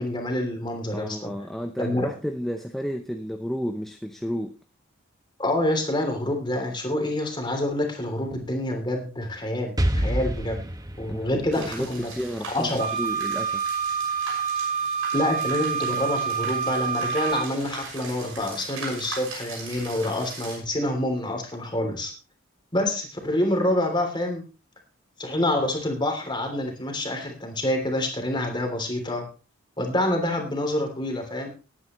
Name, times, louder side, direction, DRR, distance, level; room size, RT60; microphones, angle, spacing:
voice 1, 0.0-1.3 1.8-2.1 5.4-10.7 11.0-12.1 12.5-12.9 15.1-22.1 22.7-24.4 25.2-29.2 29.8-31.5, left 1 dB, 20° left, 3 dB, 3.1 m, -27 dB
voice 2, 0.9-4.6 11.1-13.6, equal, ahead, 5 dB, 0.7 m, -32 dB
Explosion, 9.8-13.5, equal, 15° right, 1.0 m, -29 dB
sound 1, 11.5-20.6, right 4 dB, 65° right, 6.3 m, -40 dB
Wind instrument woodwind instrument, 12.8-17.5, right 6 dB, 35° right, 2.0 m, -27 dB
19.5 x 9.7 x 3.1 m, 0.33 s
head